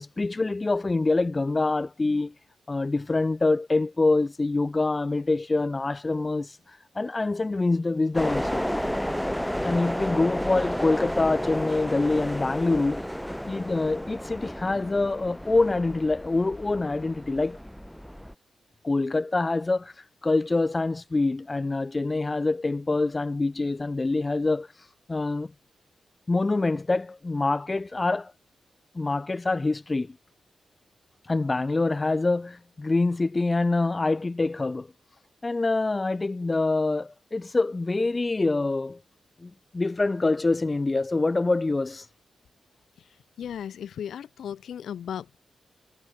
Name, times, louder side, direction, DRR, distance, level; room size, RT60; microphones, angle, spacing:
voice 1, 0.0-2.3 2.7-6.6 6.9-8.7 9.6-13.1 13.4-17.6 18.8-19.9 20.2-24.7 25.1-25.5 26.3-28.3 28.9-30.2 31.3-34.9 35.4-39.0 39.4-42.1, left 3 dB, 25° left, 2.4 m, -25 dB
sound 1, 8.1-18.3, equal, ahead, 1.3 m, -32 dB
voice 2, 43.4-45.4, left 9 dB, 80° left, 0.8 m, -35 dB
cardioid pair, 100°, 0 cm